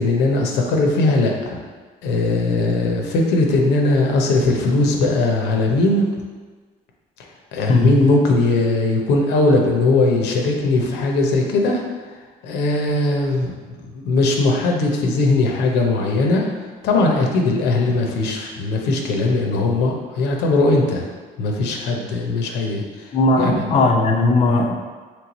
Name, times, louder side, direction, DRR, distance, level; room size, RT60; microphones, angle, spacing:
voice 1, 0.0-1.6 2.0-6.1 7.5-11.8 12.4-13.8 14.0-16.5 16.8-21.0 21.4-23.1 23.4-23.5, left 2 dB, 85° left, 1 dB, 0.6 m, -19 dB
voice 2, 23.1-24.7, left 2 dB, 35° left, 1 dB, 0.4 m, -17 dB
3.2 x 3.1 x 4.0 m, 1.4 s
cardioid pair, 110°, 17 cm